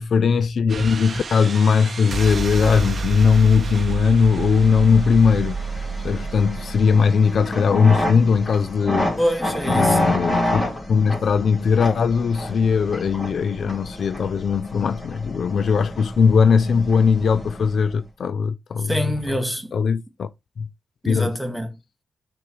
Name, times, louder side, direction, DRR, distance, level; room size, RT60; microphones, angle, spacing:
voice 1, 0.0-9.1 9.7-10.6 10.9-19.4 19.7-20.3 20.6-20.7 21.1-21.4, left 6 dB, 65° left, 0.3 m, -19 dB
sound 1, 0.7-8.4, right 4 dB, 50° right, 0.7 m, -30 dB
sound 2, 4.0-17.9, left 1 dB, 20° left, 2.4 m, -29 dB
voice 2, 9.2-10.2 18.9-19.7 21.0-21.7, equal, 5° left, 1.6 m, -25 dB
6.0 x 3.4 x 4.6 m
cardioid pair, 75°, 0 cm